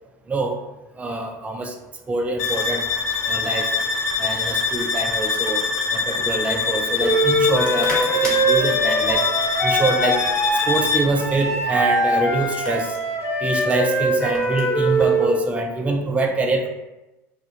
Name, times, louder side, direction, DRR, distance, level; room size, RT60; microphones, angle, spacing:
voice 1, 1.0-1.7 2.1-2.8 3.2-3.7 4.2-5.6 5.9-9.3 9.6-10.2 10.7-13.0 13.4-16.7, right 2 dB, 15° right, 2 dB, 0.3 m, -24 dB
sound 1, 2.4-11.2, left 5 dB, 75° left, 0.4 m, -24 dB
sound 2, 4.1-15.2, equal, 10° left, 1.1 m, -39 dB
Wind instrument woodwind instrument, 7.0-15.3, right 1 dB, 30° left, 0.9 m, -22 dB
2.3 x 2.0 x 2.7 m, 1.0 s
hypercardioid pair, 80°, 9 cm